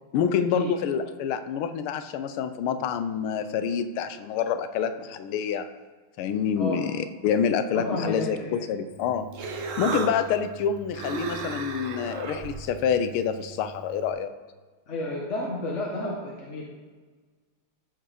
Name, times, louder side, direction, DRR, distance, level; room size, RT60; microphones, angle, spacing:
voice 1, 0.1-5.7 6.2-9.3 9.8-14.3, left 7 dB, 90° left, 10 dB, 1.6 m, -27 dB
voice 2, 7.7-8.6 14.9-16.6, left 2 dB, 40° left, -3 dB, 1.2 m, -31 dB
Human voice, 8.9-14.1, right 4 dB, 55° right, 0.9 m, -36 dB
13.5 x 4.6 x 5.0 m, 1.4 s
omnidirectional pair, 2.3 m